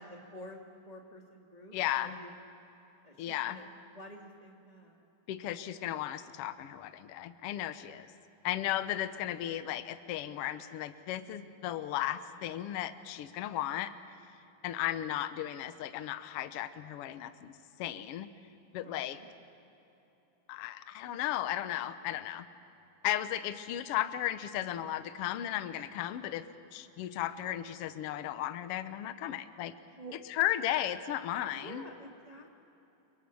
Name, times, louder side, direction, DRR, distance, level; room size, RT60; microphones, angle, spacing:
voice 1, 0.0-2.3 3.0-5.0 18.7-19.3 24.5-24.9 30.0-30.2 31.5-32.6, equal, 20° right, 1 dB, 1.0 m, -50 dB
voice 2, 1.7-2.2 3.2-3.6 5.3-8.1 8.4-13.9 14.6-17.5 17.8-18.3 18.7-19.2 20.5-22.5 23.0-26.5 26.7-29.7 30.3-31.9, left 12 dB, 90° left, 11 dB, 1.3 m, -35 dB
29.5 x 24.0 x 7.1 m, 3.0 s
omnidirectional pair, 3.9 m